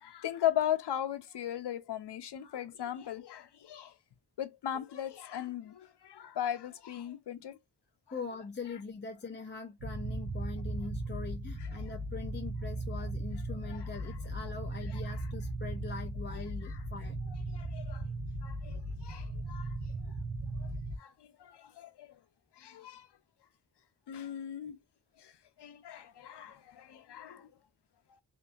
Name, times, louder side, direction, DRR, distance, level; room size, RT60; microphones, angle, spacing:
voice 1, 0.0-3.9 4.4-7.6 11.6-11.7 13.7-14.2 14.9-15.2 16.6-16.8 17.5-18.1 18.4-19.8 20.6-20.7 21.0-22.2 22.6-23.1 24.1-24.8 25.2-25.3 25.6-27.5 28.1-28.2, left 11 dB, 80° left, 0.5 m, -38 dB
voice 2, 8.1-17.2, left 4 dB, 30° left, 0.4 m, -42 dB
sound 1, 9.8-21.0, right 2 dB, 80° right, 0.8 m, -37 dB
2.7 x 2.4 x 2.3 m
wide cardioid pair, 80°, 40 cm